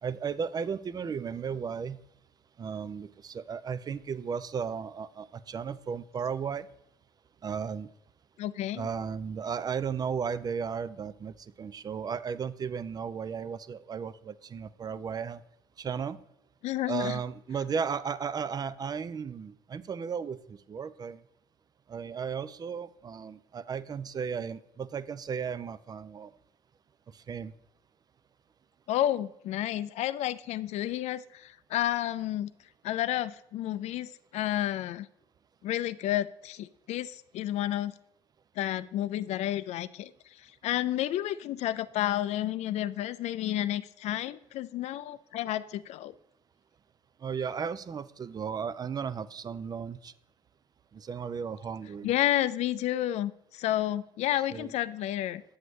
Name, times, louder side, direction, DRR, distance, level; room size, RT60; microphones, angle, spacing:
voice 1, 0.0-2.0 2.6-6.7 7.4-7.9 8.7-15.4 15.8-16.2 16.9-21.2 21.9-26.3 27.1-27.5 47.2-50.1 50.9-52.1 54.5-54.7, right 6 dB, 30° right, 16 dB, 0.4 m, -35 dB
voice 2, 8.4-8.9 16.6-17.2 28.9-32.5 32.8-35.1 35.6-37.9 38.6-40.1 40.4-46.1 52.0-55.4, left 13 dB, 60° left, 16 dB, 0.4 m, -31 dB
7.9 x 7.8 x 3.1 m, 0.80 s
supercardioid pair, 75°, 13 cm